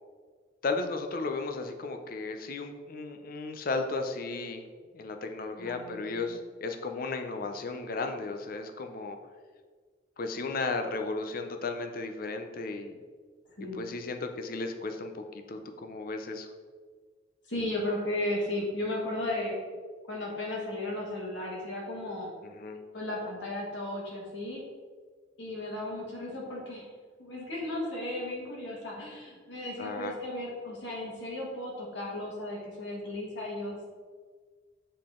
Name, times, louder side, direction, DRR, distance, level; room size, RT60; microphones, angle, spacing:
voice 1, 0.6-4.6 4.9-9.2 10.2-12.9 13.7-16.5 22.4-22.8 29.8-30.2, left 3 dB, 50° left, 6 dB, 0.5 m, -35 dB
voice 2, 5.6-6.4 13.6-13.9 17.5-19.6 20.1-22.3 22.9-24.6 25.4-26.8 27.2-33.9, left 1 dB, 70° left, -3 dB, 1.6 m, -35 dB
6.5 x 3.8 x 3.7 m, 1.5 s
head